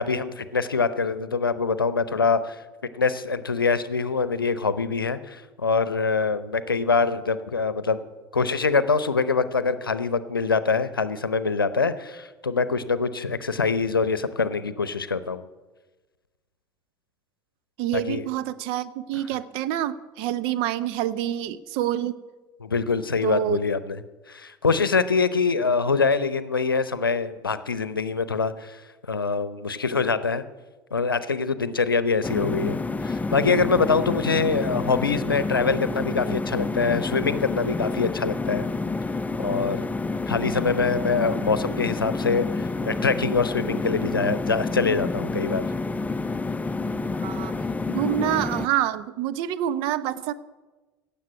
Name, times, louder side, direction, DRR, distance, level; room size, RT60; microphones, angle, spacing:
voice 1, 0.0-2.6 2.9-8.0 8.3-15.5 17.9-18.2 22.6-24.0 24.3-28.8 29.1-30.4 30.9-38.7 39.4-39.8 40.3-45.6, left 4 dB, 80° left, 15 dB, 0.7 m, -24 dB
voice 2, 17.8-22.2 23.2-23.6 47.2-47.6 47.9-50.3, right 12 dB, 55° right, 14 dB, 0.8 m, -27 dB
sound 1, 32.2-48.7, left 3 dB, 15° left, 0.6 m, -28 dB
17.0 x 7.1 x 9.4 m, 1.2 s
figure-of-eight pair, 65°, 12 cm